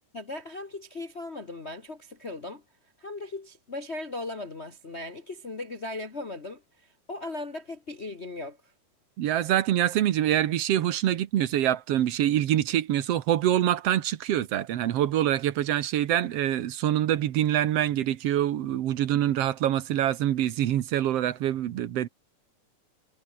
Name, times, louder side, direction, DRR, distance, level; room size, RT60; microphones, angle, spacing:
voice 1, 0.1-2.6 3.0-8.7, left 2 dB, 70° left, 0.6 m, -38 dB
voice 2, 9.2-22.1, right 12 dB, 65° right, 1.7 m, -25 dB
omnidirectional pair, 3.8 m